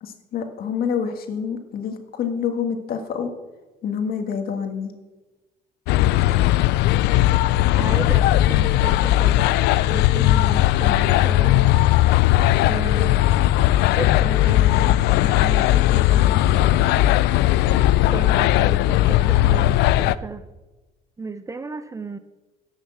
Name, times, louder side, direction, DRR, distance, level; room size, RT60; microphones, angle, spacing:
voice 1, 0.0-3.3 3.8-4.9, left 7 dB, 60° left, 6 dB, 1.7 m, -27 dB
sound 1, 5.9-20.2, left 14 dB, 85° left, 0.4 m, -18 dB
voice 2, 7.7-9.5 9.9-12.0 12.7-13.2 13.7-17.2 18.1-20.5 21.2-22.2, right 4 dB, 20° right, 12 dB, 0.6 m, -34 dB
11.0 x 6.5 x 7.2 m, 1.2 s
cardioid pair, 110°, 17 cm